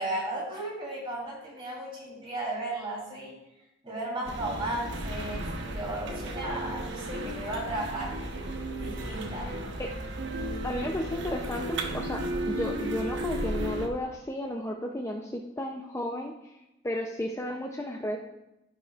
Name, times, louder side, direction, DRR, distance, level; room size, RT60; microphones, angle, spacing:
voice 1, 0.0-3.3 3.8-8.2 8.8-9.5, right 1 dB, 30° right, -5 dB, 3.4 m, -35 dB
sound 1, 4.2-13.9, right 1 dB, 65° right, 0.9 m, -34 dB
voice 2, 10.6-11.7 11.9-12.2 12.5-16.6 16.8-18.2, left 1 dB, 15° left, 1 dB, 0.5 m, -33 dB
16.0 x 5.8 x 2.4 m, 0.92 s
head